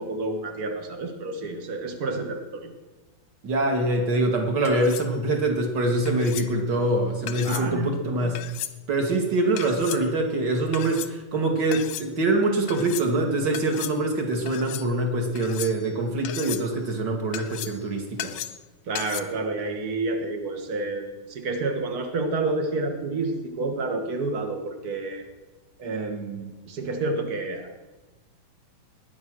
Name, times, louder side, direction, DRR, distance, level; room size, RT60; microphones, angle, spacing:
voice 1, 0.0-2.7 7.4-8.0 8.2-8.3 18.9-25.2 25.8-27.7, right 2 dB, 75° right, 4 dB, 0.8 m, -29 dB
voice 2, 3.4-8.4 8.9-18.3, right 2 dB, 35° right, 3 dB, 2.0 m, -24 dB
sound 1, 4.6-5.1 6.1-6.5 7.3-7.7 8.3-8.8 9.6-10.0 10.7-11.1 11.7-12.1 12.7-13.1 13.5-14.0 14.5-14.9 15.3-15.9 16.2-16.7 17.3-17.8 18.2-18.6 18.9-19.2, left 12 dB, 75° left, 1.8 m, -35 dB
19.0 x 10.5 x 6.3 m, 1.2 s
omnidirectional pair, 4.1 m